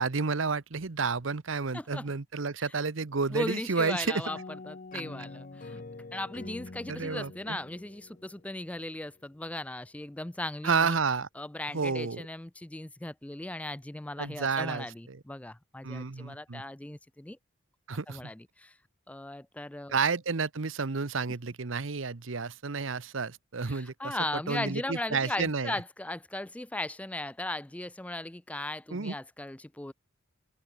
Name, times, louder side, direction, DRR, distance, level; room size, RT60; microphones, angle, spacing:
voice 1, 0.0-4.2 6.9-7.6 10.6-11.3 11.7-12.2 14.2-15.2 15.8-16.6 17.9-18.3 19.9-25.7 28.9-29.1, right 4 dB, 70° right, 0.9 m, -31 dB
voice 2, 1.7-2.1 2.6-2.7 3.3-4.4 4.7-5.8 6.1-11.0 11.4-17.4 18.1-18.8 19.1-20.0 23.7-29.9, left 1 dB, 5° left, 0.4 m, -37 dB
sound 1, 4.2-8.9, left 3 dB, 45° left, 0.7 m, -45 dB
open air
head